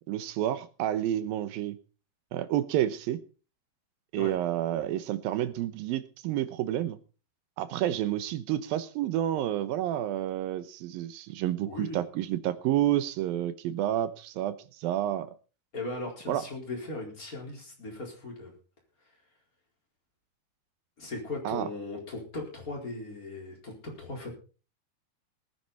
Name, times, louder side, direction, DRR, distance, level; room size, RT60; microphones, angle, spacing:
voice 1, 0.1-1.8 2.3-3.2 4.1-7.0 7.6-15.3 16.3-16.4 21.4-21.7, right 12 dB, 75° right, 13 dB, 2.5 m, -29 dB
voice 2, 11.6-12.0 15.7-18.5 21.0-24.3, left 2 dB, 20° left, 0 dB, 4.5 m, -38 dB
19.5 x 10.0 x 4.1 m, 0.36 s
omnidirectional pair, 4.6 m